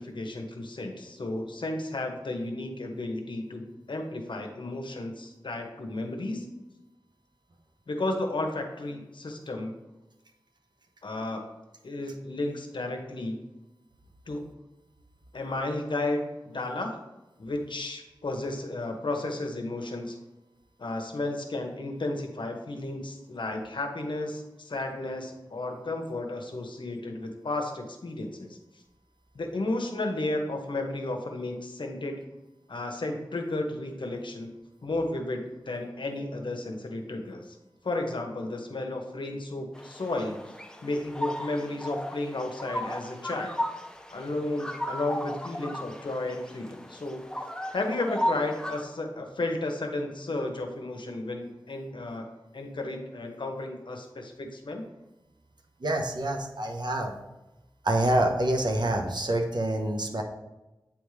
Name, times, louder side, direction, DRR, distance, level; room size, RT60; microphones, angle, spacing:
voice 1, 0.0-6.5 7.9-9.7 11.0-11.4 11.8-13.4 14.3-14.5 15.3-17.0 17.4-20.2 20.8-28.6 29.3-32.2 32.7-34.5 34.8-37.6 37.8-40.4 40.8-43.6 44.1-47.2 47.7-52.3 52.5-54.8, left 2 dB, 75° left, 4 dB, 0.9 m, -33 dB
sound 1, 39.8-48.8, left 1 dB, 10° left, 0.6 m, -35 dB
voice 2, 55.8-57.1 57.8-60.2, right 1 dB, 60° right, 2 dB, 0.9 m, -26 dB
8.7 x 3.5 x 3.2 m, 1.0 s
cardioid pair, 45°, 8 cm